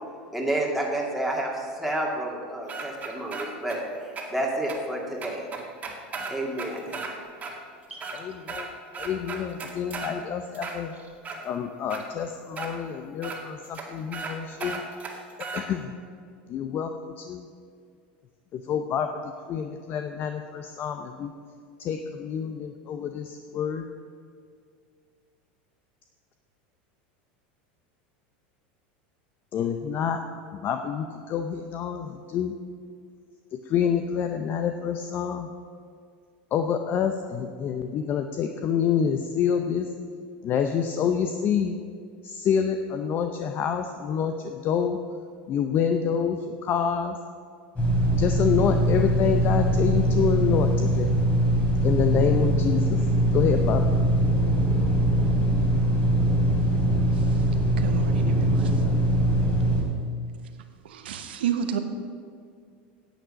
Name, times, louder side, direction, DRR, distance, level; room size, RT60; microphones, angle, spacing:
voice 1, 0.3-5.4 6.3-6.9 7.9-8.0, right 1 dB, ahead, -2 dB, 2.3 m, -30 dB
sound 1, 2.7-3.8 4.2-4.3 4.7-4.8 5.2-7.1 7.4-7.5 7.9-8.7 8.9-10.1 10.5-11.4 11.9-12.0 12.6-12.7 13.2-13.4 13.7-13.8 14.1-14.3 14.6-15.6, right 4 dB, 25° right, 1.9 m, -35 dB
voice 2, 8.1-8.7 9.0-10.9 11.4-14.8 15.5-15.9 16.5-17.4 18.5-21.3 21.8-23.8 29.5-30.2 30.5-32.5 33.7-35.5 36.5-39.9 40.4-41.8 42.2-45.0 45.5-47.2 48.1-51.2 51.8-53.0 53.3-53.8, left 7 dB, 40° left, 6 dB, 0.6 m, -27 dB
sound 2, 47.8-59.8, right 1 dB, 25° left, 3.1 m, -22 dB
voice 3, 57.8-58.8 60.8-61.8, right 8 dB, 90° right, 7 dB, 1.1 m, -30 dB
10.0 x 8.1 x 6.4 m, 2.2 s
supercardioid pair, 110°, 5 cm